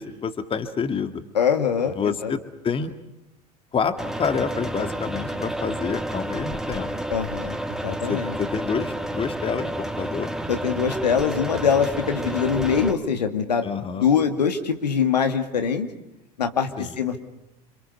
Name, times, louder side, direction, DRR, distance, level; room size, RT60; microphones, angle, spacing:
voice 1, 0.0-1.2 1.9-3.0 3.7-6.9 8.0-10.3 13.6-14.1 16.8-16.9, left 6 dB, 25° left, 9 dB, 2.1 m, -28 dB
voice 2, 1.3-1.9 2.2-2.3 7.1-8.3 10.5-13.7 14.0-15.9 16.4-17.2, left 7 dB, 75° left, 6 dB, 2.3 m, -23 dB
sound 1, 4.0-12.9, right 1 dB, ahead, 2.3 m, -30 dB
27.5 x 27.0 x 6.9 m, 0.87 s
figure-of-eight pair, 75°, 21 cm